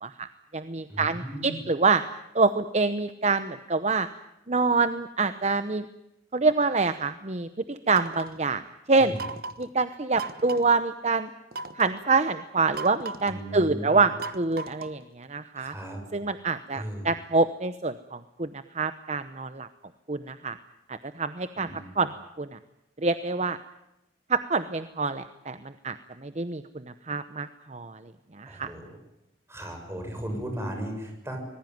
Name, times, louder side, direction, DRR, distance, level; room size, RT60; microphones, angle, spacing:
voice 1, 0.0-2.0 2.3-4.1 4.5-5.8 6.3-8.6 8.9-9.1 9.6-11.3 11.7-15.7 16.1-19.7 20.1-20.6 20.9-22.1 22.4-22.6 23.0-23.6 24.3-28.7, right 4 dB, 35° right, 11 dB, 0.9 m, -26 dB
voice 2, 0.9-1.6 9.0-9.2 13.3-14.0 15.6-16.0 16.7-17.1 21.6-22.0 28.5-28.9 29.5-31.4, right 1 dB, 15° right, 3 dB, 6.8 m, -36 dB
sound 1, 7.9-8.4 9.2-9.7 10.2-10.8 11.5-12.0 12.7-13.4 14.2-15.0, right 4 dB, 55° right, 1.3 m, -37 dB
25.5 x 20.0 x 9.4 m, 0.90 s
head